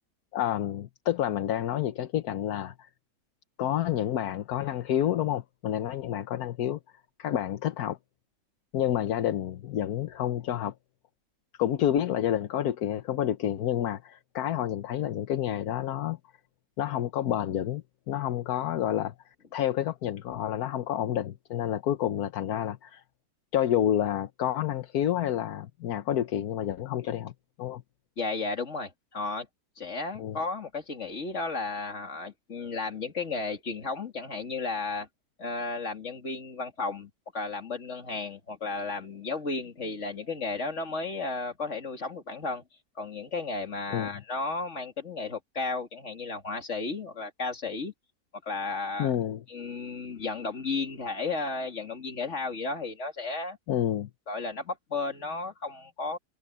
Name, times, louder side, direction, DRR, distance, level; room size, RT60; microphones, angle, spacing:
voice 1, 0.3-2.9 3.6-6.8 7.2-8.0 8.7-10.7 11.6-16.2 16.8-19.1 19.5-23.0 23.5-27.3 27.6-27.8 30.2-30.4 43.9-44.1 49.0-49.4 53.7-54.1, left 11 dB, 80° left, 1.3 m, -29 dB
voice 2, 28.2-29.5 29.8-35.1 35.4-42.6 43.0-47.9 48.4-49.1 49.5-53.6 54.3-56.2, left 3 dB, 50° left, 2.8 m, -33 dB
omnidirectional pair, 1.6 m